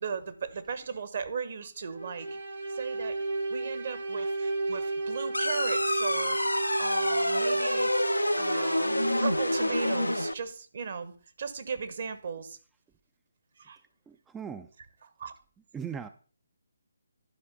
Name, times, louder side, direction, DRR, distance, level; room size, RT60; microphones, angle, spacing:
voice 1, 0.0-2.3 2.7-3.2 3.5-6.4 6.8-7.9 8.4-11.1 11.4-12.6 13.6-13.8 15.0-15.3, right 6 dB, 50° right, 10 dB, 1.1 m, -36 dB
sound 1, 1.9-10.3, right 2 dB, 75° right, 1.9 m, -32 dB
sound 2, 5.3-10.3, left 1 dB, 90° left, 0.5 m, -28 dB
voice 2, 14.1-14.7 15.7-16.1, right 7 dB, 10° right, 10 dB, 0.3 m, -38 dB
11.5 x 4.9 x 5.3 m, 0.39 s
figure-of-eight pair, 145°, 0 cm